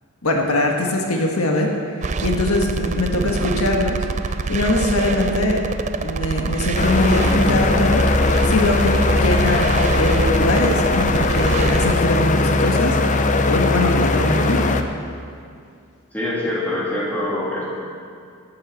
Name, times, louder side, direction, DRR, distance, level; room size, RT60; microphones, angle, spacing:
voice 1, 0.2-4.0 4.2-5.6 6.0-8.1 8.4-13.0 13.3-14.7, left 1 dB, 80° left, 1 dB, 1.5 m, -22 dB
sound 1, 2.0-12.0, right 4 dB, 30° right, 0.3 m, -25 dB
voice 2, 2.9-3.3 16.1-17.6, left 1 dB, 10° left, -7 dB, 2.9 m, -25 dB
sound 2, 6.7-14.8, left 3 dB, 35° left, 0.6 m, -19 dB
12.0 x 9.0 x 7.8 m, 2.3 s
head